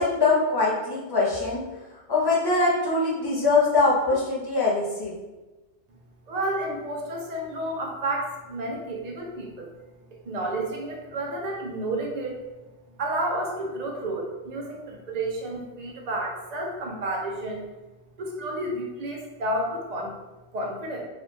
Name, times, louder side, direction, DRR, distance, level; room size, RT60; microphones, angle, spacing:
voice 1, 0.0-1.6 2.1-5.1, left 3 dB, 25° left, -5 dB, 0.5 m, -22 dB
voice 2, 6.3-9.7 10.2-12.4 13.0-17.7 18.2-20.1 20.5-21.1, right 1 dB, 65° right, -1 dB, 0.4 m, -31 dB
2.8 x 2.3 x 3.2 m, 1.1 s
omnidirectional pair, 1.3 m